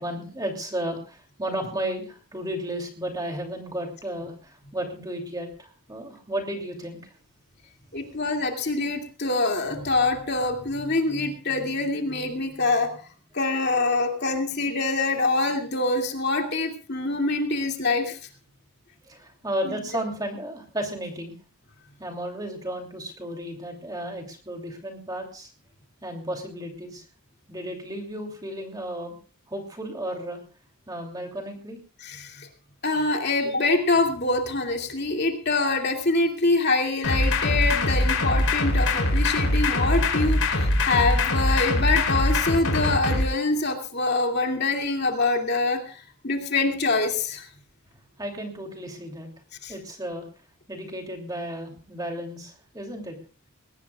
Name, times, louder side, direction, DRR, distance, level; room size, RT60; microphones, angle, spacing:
voice 1, 0.0-4.3 4.7-5.5 5.9-7.0 19.1-21.3 22.0-25.5 26.0-27.0 27.5-29.1 29.5-30.4 30.9-31.8 48.2-49.3 49.7-50.3 50.7-53.1, right 1 dB, 15° right, 2 dB, 2.9 m, -33 dB
voice 2, 7.9-12.9 13.3-18.2 19.6-19.8 32.0-32.5 32.8-46.0 46.2-47.4 49.6-49.7, left 3 dB, 45° left, 2 dB, 2.5 m, -25 dB
sound 1, 37.0-43.2, left 2 dB, 80° left, 4.1 m, -23 dB
21.0 x 18.5 x 2.4 m, 0.38 s
head